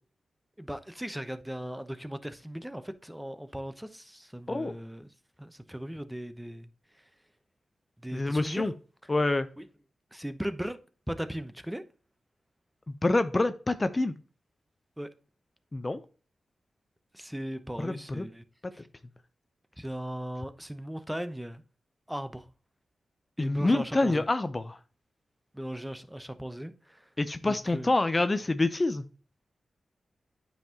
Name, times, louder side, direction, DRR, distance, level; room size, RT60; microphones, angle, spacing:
voice 1, 0.6-5.1 5.4-6.7 8.0-8.7 9.6-9.7 10.1-10.8 11.1-11.8 15.0-15.1 17.1-18.4 18.7-18.9 19.8-21.6 22.1-22.5 23.4-24.2 25.5-27.0 27.5-27.9, equal, 5° right, 0.8 m, -38 dB
voice 2, 8.1-8.7 9.1-9.5 13.0-14.1 15.7-16.0 17.8-18.3 23.4-24.8 27.2-29.0, left 2 dB, 30° left, 0.6 m, -27 dB
9.0 x 5.6 x 2.9 m
cardioid pair, 50°, 0 cm